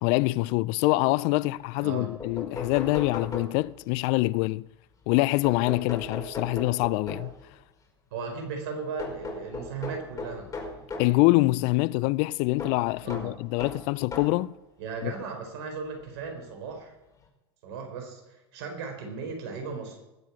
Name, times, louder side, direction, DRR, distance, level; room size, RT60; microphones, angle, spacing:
voice 1, 0.0-4.7 5.1-7.3 11.0-14.5 15.0-15.1, left 21 dB, 55° left, 0.4 m, -25 dB
sound 1, 2.2-4.0 5.4-7.5 9.0-11.2 12.6-14.5 15.3-15.4 16.8-16.9 17.2-17.3, left 3 dB, 25° left, 4.9 m, -38 dB
voice 2, 8.1-10.5 13.0-13.3 14.8-16.9 17.6-20.0, right 5 dB, 70° right, 4.5 m, -36 dB
20.0 x 7.4 x 6.0 m
hypercardioid pair, 95°, 14 cm